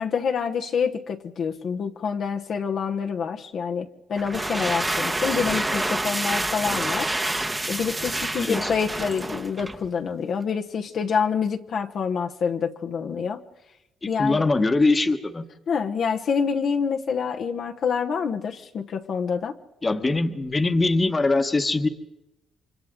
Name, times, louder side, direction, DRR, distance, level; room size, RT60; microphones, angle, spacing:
voice 1, 0.0-7.2 7.7-13.4 14.1-14.5 15.7-19.6, left 6 dB, 60° left, 3 dB, 1.1 m, -27 dB
sound 1, 4.1-9.9, right 2 dB, 15° right, 1.2 m, -28 dB
voice 2, 8.3-8.7 14.0-15.4 19.8-21.9, left 3 dB, 25° left, 8 dB, 1.3 m, -22 dB
29.5 x 25.0 x 3.8 m, 0.94 s
cardioid pair, 90°, 0 cm